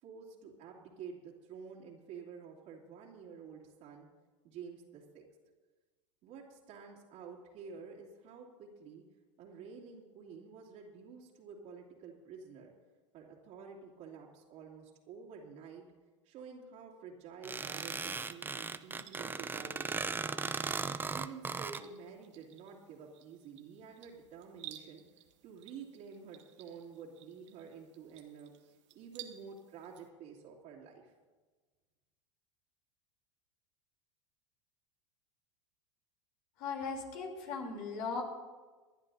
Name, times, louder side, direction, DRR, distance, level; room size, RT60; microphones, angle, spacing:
voice 1, 0.0-4.1 4.4-5.2 6.2-9.0 9.4-12.7 13.1-15.8 16.2-20.6 21.1-25.0 25.4-31.1, right 6 dB, 50° right, -4 dB, 2.9 m, -50 dB
sound 1, 17.4-21.8, right 4 dB, 15° right, 0.6 m, -37 dB
sound 2, 17.7-30.1, right 12 dB, 70° right, 1.4 m, -56 dB
voice 2, 36.6-38.2, left 4 dB, 55° left, 1 dB, 3.5 m, -38 dB
26.0 x 11.0 x 2.8 m, 1.3 s
hypercardioid pair, 90°, 16 cm